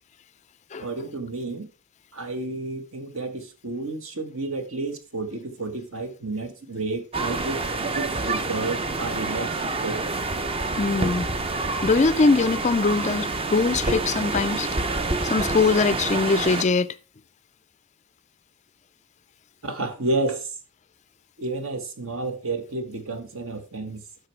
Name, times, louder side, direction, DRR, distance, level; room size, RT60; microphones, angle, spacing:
voice 1, 0.8-1.7 2.1-10.0 19.6-20.5 21.4-24.0, right 2 dB, 65° right, 1.4 m, -31 dB
sound 1, 7.1-16.6, right 3 dB, 25° right, 0.6 m, -27 dB
voice 2, 10.8-11.3 11.8-14.7 15.2-16.9, left 4 dB, 30° left, 0.3 m, -22 dB
10.0 x 6.6 x 3.2 m
head